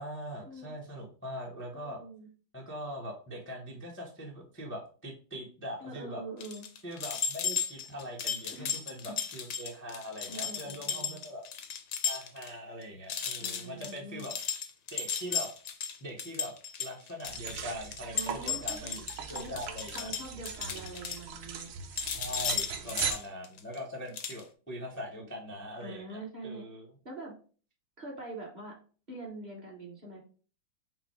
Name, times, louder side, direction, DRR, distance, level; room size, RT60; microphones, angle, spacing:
voice 1, 0.0-2.0 2.5-6.2 6.8-11.4 12.0-14.3 14.9-15.5 16.0-16.5 16.8-20.1 22.1-26.9, equal, 10° left, -4 dB, 0.5 m, -42 dB
voice 2, 1.7-2.3 5.8-6.6 8.5-8.7 9.1-9.2 10.3-11.2 13.4-14.3 18.1-18.9 19.3-19.6 19.9-21.7 25.8-26.7 27.0-27.3 28.0-28.8 29.1-30.2, right 2 dB, 30° right, -2 dB, 1.0 m, -44 dB
sound 1, 6.4-12.5 12.8-12.9 13.1-21.7 22.0-23.8 24.1-24.4, left 7 dB, 65° left, 0.9 m, -35 dB
sound 2, 17.2-23.1, right 7 dB, 65° right, 1.0 m, -39 dB
5.8 x 2.0 x 4.6 m, 0.40 s
omnidirectional pair, 2.1 m